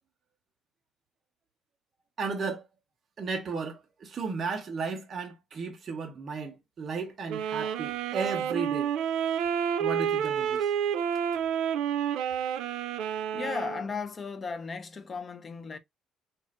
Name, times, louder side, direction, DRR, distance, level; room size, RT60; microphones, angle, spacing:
voice 1, 2.2-2.7 3.2-8.9 9.8-10.7, right 4 dB, 30° right, 0.6 m, -34 dB
sound 1, 7.3-13.9, right 8 dB, 90° right, 0.4 m, -29 dB
voice 2, 13.3-15.8, left 5 dB, 20° left, 0.4 m, -35 dB
4.4 x 2.4 x 3.0 m
cardioid pair, 180°, 0 cm